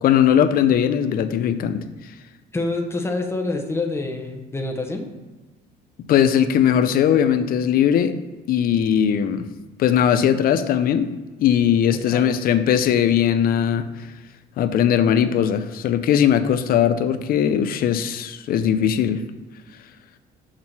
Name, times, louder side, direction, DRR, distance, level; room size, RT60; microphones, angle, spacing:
voice 1, 0.0-1.8 6.1-8.2 8.5-9.5 9.8-11.1 11.4-14.1 14.6-19.2, left 9 dB, 60° left, 11 dB, 0.6 m, -19 dB
voice 2, 2.5-5.1 12.1-12.3, left 2 dB, 15° left, 3 dB, 1.0 m, -26 dB
6.5 x 3.7 x 5.9 m, 1.2 s
cardioid pair, 110°, 17 cm